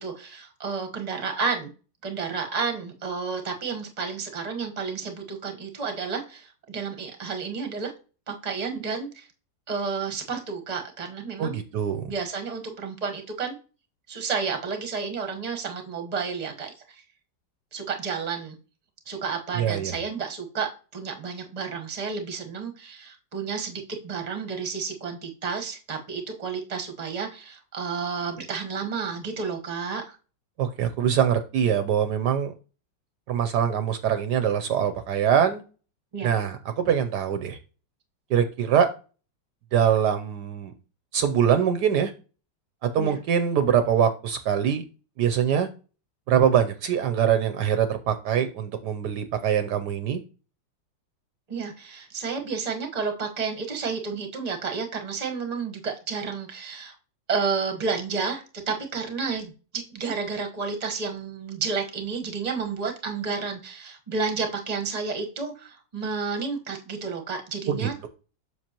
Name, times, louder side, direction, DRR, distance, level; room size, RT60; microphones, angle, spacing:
voice 1, 0.0-1.7 2.0-7.9 8.3-9.3 9.7-11.5 12.1-13.5 14.1-17.0 17.7-18.5 19.1-30.2 36.1-36.4 43.0-43.2 51.5-56.9 57.3-68.1, right 5 dB, 25° right, 4 dB, 1.1 m, -31 dB
voice 2, 11.4-12.1 19.6-19.9 30.6-32.5 33.3-35.6 36.2-37.6 38.3-38.9 39.7-40.7 41.1-42.1 42.8-44.8 45.2-45.7 46.3-50.2 67.7-68.1, right 8 dB, 70° right, 8 dB, 1.1 m, -23 dB
7.5 x 6.4 x 2.9 m, 0.35 s
omnidirectional pair, 2.0 m